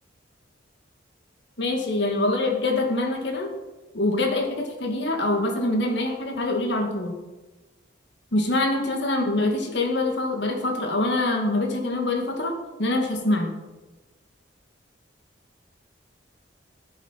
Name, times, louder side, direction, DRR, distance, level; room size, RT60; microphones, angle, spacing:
voice 1, 1.6-3.5 3.9-7.1 8.3-12.5 12.8-13.5, left 2 dB, 65° left, 3 dB, 2.2 m, -24 dB
15.5 x 7.1 x 5.9 m, 1.2 s
head